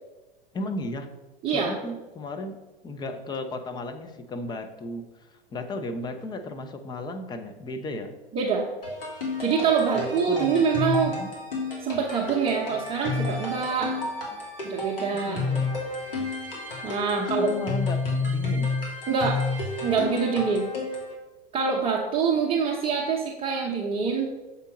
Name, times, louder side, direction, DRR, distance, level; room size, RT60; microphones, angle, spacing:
voice 1, 0.5-1.1 1.5-2.6 2.8-5.1 5.5-8.1 9.9-10.6 11.1-11.3 15.1-15.7 17.2-18.0 18.3-18.7, left 2 dB, 15° left, 6 dB, 0.6 m, -34 dB
voice 2, 1.4-1.7 8.3-8.7 9.4-11.2 11.8-13.9 14.6-15.4 16.8-17.5 19.1-19.4 19.8-20.7 21.5-24.3, right 5 dB, 20° right, -2 dB, 0.8 m, -25 dB
sound 1, 8.8-21.1, left 3 dB, 70° left, 2.4 m, -30 dB
6.9 x 4.5 x 5.1 m, 1.1 s
figure-of-eight pair, 90°, 29 cm